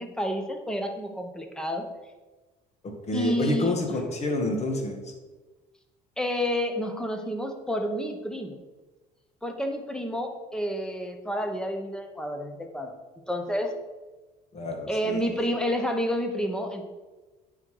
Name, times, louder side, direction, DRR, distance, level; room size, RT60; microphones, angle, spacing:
voice 1, 0.0-1.9 3.1-3.8 6.2-8.6 9.4-12.9 13.3-13.7 14.9-16.9, equal, 5° left, 4 dB, 1.1 m, -29 dB
voice 2, 3.1-5.0 14.5-15.2, left 2 dB, 40° left, 3 dB, 1.6 m, -28 dB
9.5 x 3.9 x 4.8 m, 1.2 s
supercardioid pair, 95°, 18 cm